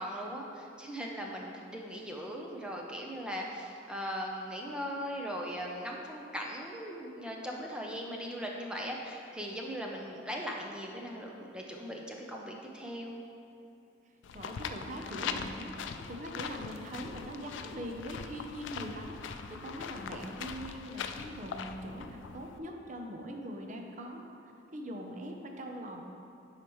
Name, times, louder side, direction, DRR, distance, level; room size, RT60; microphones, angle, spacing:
voice 1, 0.0-13.2, equal, 5° right, -1 dB, 0.6 m, -39 dB
sound 1, 14.2-22.6, left 6 dB, 85° left, 0.4 m, -41 dB
voice 2, 14.3-15.7 16.1-24.3 24.7-26.0, equal, 40° right, 2 dB, 0.7 m, -42 dB
10.0 x 4.9 x 3.1 m, 2.6 s
head